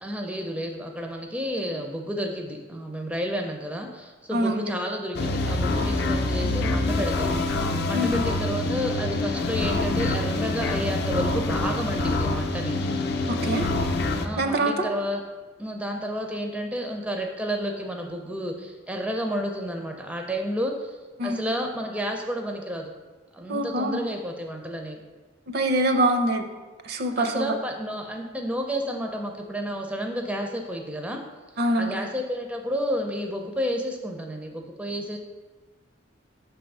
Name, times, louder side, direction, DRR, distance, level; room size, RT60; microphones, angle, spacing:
voice 1, 0.0-7.4 7.9-12.8 14.2-15.2 15.6-21.0 21.2-22.9 23.3-25.0 27.2-31.2 31.8-35.2, equal, 5° right, 3 dB, 0.4 m, -31 dB
voice 2, 4.3-4.7 7.9-8.2 13.4-13.7 14.4-14.9 21.2-21.4 23.5-24.0 25.5-26.4 26.9-27.5 31.6-32.0, right 1 dB, 55° right, 6 dB, 0.5 m, -24 dB
sound 1, 5.1-14.3, left 2 dB, 55° left, 0.5 m, -26 dB
6.0 x 3.4 x 5.3 m, 1.3 s
head